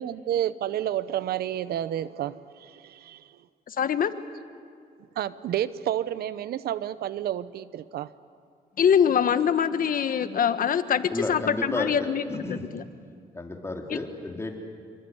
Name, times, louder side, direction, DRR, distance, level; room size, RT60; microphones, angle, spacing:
voice 1, 0.0-3.4 5.2-8.1, right 11 dB, 85° right, 0.8 m, -30 dB
voice 2, 3.7-4.1 8.8-12.8 13.9-14.0, left 8 dB, 60° left, 1.4 m, -24 dB
voice 3, 11.1-11.9 12.3-12.6 13.3-14.6, left 2 dB, 15° left, 3.7 m, -32 dB
26.5 x 23.5 x 9.6 m
cardioid pair, 85°, 16 cm